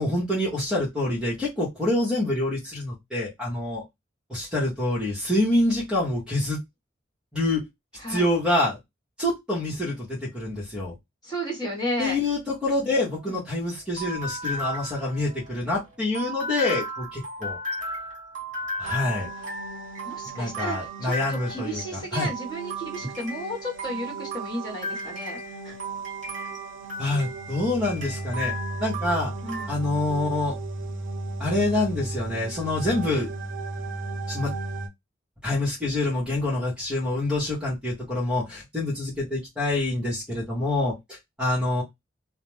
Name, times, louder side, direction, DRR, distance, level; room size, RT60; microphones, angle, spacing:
voice 1, 0.0-3.8 4.3-6.6 7.3-7.6 8.1-8.8 9.2-10.9 12.0-17.6 18.8-19.3 20.3-22.3 27.0-28.5 28.8-29.3 29.7-30.5 31.4-33.3 34.3-34.5 35.4-41.8, left 2 dB, 5° right, -5 dB, 1.0 m, -26 dB
voice 2, 11.2-12.2 20.0-25.4 25.6-25.7 29.4-29.8, equal, 20° left, -3 dB, 1.3 m, -33 dB
sound 1, 13.0-29.7, equal, 40° right, 1.2 m, -35 dB
sound 2, 18.8-34.9, right 2 dB, 75° right, 0.5 m, -36 dB
2.5 x 2.1 x 3.1 m, 0.18 s
head